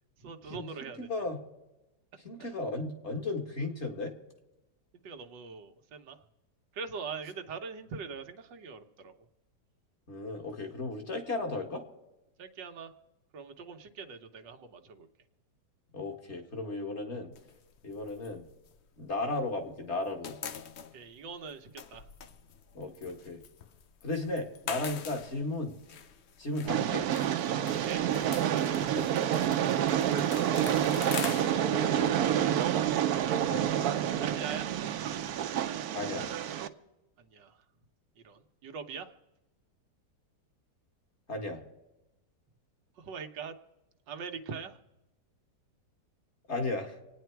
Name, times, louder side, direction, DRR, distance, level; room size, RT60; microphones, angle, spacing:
voice 1, 0.2-1.1 5.0-6.2 6.7-9.3 12.4-12.9 13.3-15.1 20.9-22.1 27.8-29.1 32.2-32.7 34.2-34.7 37.2-37.6 38.2-39.1 43.0-43.6 44.1-44.8, right 5 dB, 90° right, 6 dB, 1.7 m, -42 dB
voice 2, 1.0-1.4 2.2-4.1 10.1-11.8 15.9-17.3 17.8-18.5 19.0-20.3 22.7-23.4 24.0-25.8 26.4-27.1 28.8-29.1 31.7-32.1 33.5-33.7 35.9-36.3 41.3-41.6 46.5-47.0, left 2 dB, 40° left, 3 dB, 1.9 m, -35 dB
sound 1, 17.3-19.6 19.9-35.3, left 8 dB, 60° left, 0.7 m, -45 dB
Train, 26.7-36.7, right 10 dB, 65° right, 1.1 m, -28 dB
26.0 x 9.6 x 4.6 m, 1.0 s
omnidirectional pair, 1.9 m